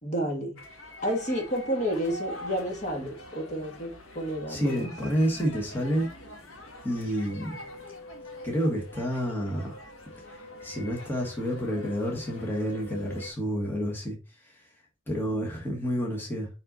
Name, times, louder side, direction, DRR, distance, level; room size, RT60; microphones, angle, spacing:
voice 1, 0.0-0.6 1.0-4.8, equal, 35° left, 1.7 m, -30 dB
sound 1, 0.6-13.3, left 1 dB, 65° left, 1.5 m, -44 dB
voice 2, 4.5-6.1 6.8-7.6 8.4-9.8 10.3-14.2 14.4-14.7 15.1-16.5, equal, 10° left, 1.5 m, -29 dB
5.5 x 5.4 x 4.0 m
head